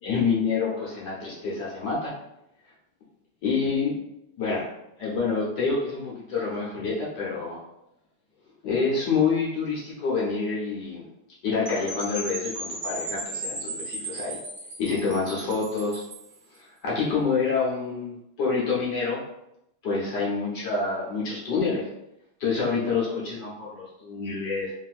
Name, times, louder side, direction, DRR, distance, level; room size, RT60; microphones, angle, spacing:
voice 1, 0.0-2.1 3.4-4.0 4.4-4.7 5.0-7.6 8.6-11.1 11.4-14.4 14.8-16.0 16.8-19.2 19.8-21.9 22.4-24.7, left 4 dB, 60° left, -5 dB, 1.3 m, -27 dB
Percussion / Wind chime, 11.7-16.3, right 1 dB, 85° right, 0.5 m, -36 dB
3.4 x 2.7 x 2.4 m, 0.82 s
omnidirectional pair, 2.4 m